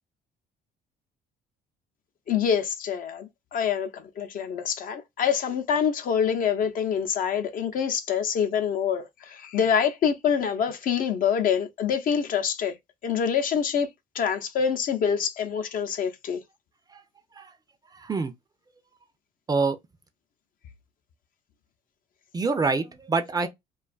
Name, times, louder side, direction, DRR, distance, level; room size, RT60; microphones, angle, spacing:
voice 1, 2.3-12.7 13.0-13.9 14.1-16.4, left 7 dB, 55° left, 0.6 m, -26 dB
voice 2, 17.9-18.3 19.5-19.8 22.3-23.5, right 4 dB, 25° right, 0.5 m, -26 dB
2.5 x 2.3 x 2.3 m
cardioid pair, 110°, 17 cm